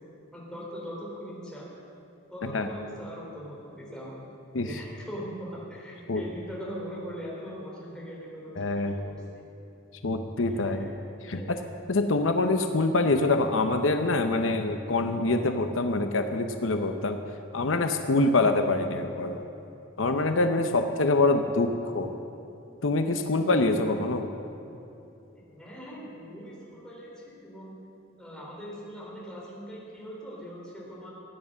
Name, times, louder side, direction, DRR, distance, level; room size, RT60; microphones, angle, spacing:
voice 1, 0.3-1.7 2.3-4.3 4.6-9.2 10.5-10.8 11.2-11.5 25.4-27.8 28.2-31.1, equal, 5° left, -5 dB, 3.5 m, -41 dB
voice 2, 8.6-8.9 10.0-10.9 11.3-11.6 11.9-17.2 17.5-19.4 20.0-22.1 22.8-24.3, left 2 dB, 75° left, 7 dB, 0.8 m, -25 dB
16.5 x 9.7 x 7.5 m, 2.9 s
head